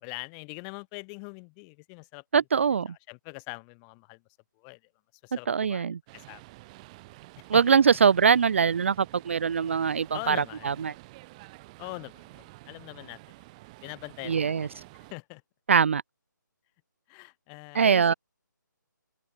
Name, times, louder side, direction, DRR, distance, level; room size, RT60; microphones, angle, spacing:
voice 1, 0.0-2.2 3.1-4.2 4.6-4.8 5.2-6.4 7.5-7.6 10.1-10.7 11.8-13.2 13.8-14.8 15.1-15.4 17.1-18.1, left 40 dB or more, 15° left, 1.4 m, -42 dB
voice 2, 2.3-2.9 5.5-6.0 7.5-10.9 14.2-14.7 15.7-16.0 17.7-18.1, right 6 dB, 40° right, 0.4 m, -22 dB
sound 1, 6.1-15.1, right 22 dB, 20° right, 4.8 m, -50 dB
open air
figure-of-eight pair, 145°, 11 cm